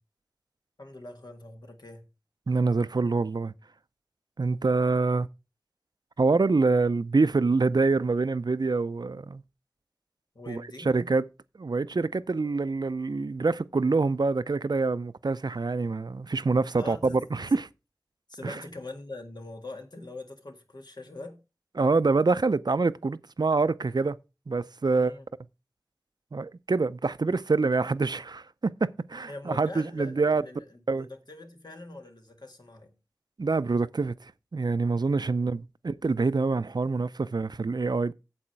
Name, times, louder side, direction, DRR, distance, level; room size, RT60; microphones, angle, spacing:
voice 1, 0.8-2.1 10.4-11.0 16.7-17.5 18.3-21.4 24.9-25.3 29.2-33.0 35.4-35.6, left 2 dB, 80° left, 1.8 m, -43 dB
voice 2, 2.5-3.5 4.4-5.3 6.2-9.4 10.5-11.2 11.6-17.7 18.4-18.6 21.8-24.2 24.5-25.1 26.3-30.4 30.9-31.1 33.4-38.1, right 3 dB, 80° right, 0.5 m, -26 dB
8.6 x 7.7 x 4.6 m
wide cardioid pair, 50°, 7 cm